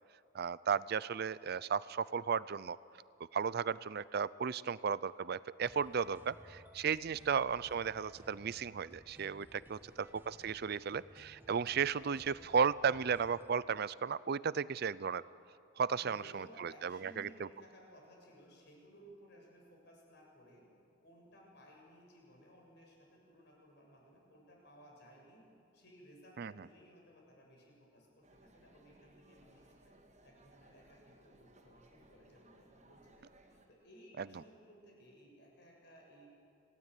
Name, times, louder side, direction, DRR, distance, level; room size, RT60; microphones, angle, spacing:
voice 1, 0.3-2.8 3.3-15.2 15.8-17.3 26.4-26.5 34.2-34.3, right 6 dB, 55° right, 18 dB, 0.5 m, -35 dB
sound 1, 5.6-13.5, equal, 10° right, 1.1 m, -59 dB
voice 2, 9.7-10.0 15.9-20.7 21.0-25.5 25.7-30.0 30.2-36.3, equal, 60° left, 0 dB, 7.1 m, -60 dB
sound 2, 28.2-33.7, right 1 dB, 35° right, 2.6 m, -64 dB
27.0 x 18.0 x 9.1 m, 2.6 s
head